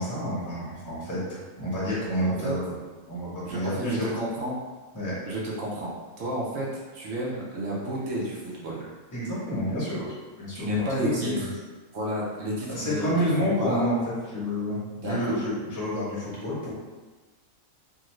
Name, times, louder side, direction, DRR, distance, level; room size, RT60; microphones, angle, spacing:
voice 1, 0.0-2.8 3.1-4.1 4.9-5.1 7.7-8.4 9.1-10.1 10.4-11.5 12.7-14.0 14.3-16.7, equal, 15° left, -7 dB, 0.7 m, -29 dB
voice 2, 3.4-4.5 5.3-5.9 6.2-6.7 6.9-8.8 10.5-11.5 11.9-13.1 13.4-13.8 15.0-15.2, equal, 70° right, -4 dB, 1.0 m, -31 dB
2.8 x 2.5 x 3.0 m, 1.3 s
omnidirectional pair, 1.4 m